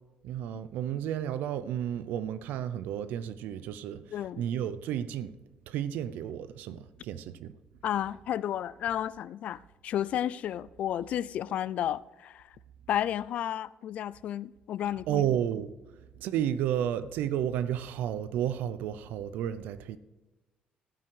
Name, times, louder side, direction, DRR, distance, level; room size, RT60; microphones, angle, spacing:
voice 1, 0.2-5.3 5.7-7.5 15.1-15.7 16.2-20.0, right 10 dB, 85° right, 0.6 m, -32 dB
voice 2, 4.1-4.4 7.8-12.5 12.9-15.2, left 11 dB, 50° left, 0.4 m, -32 dB
15.5 x 6.0 x 4.8 m
cardioid pair, 180°, 3 cm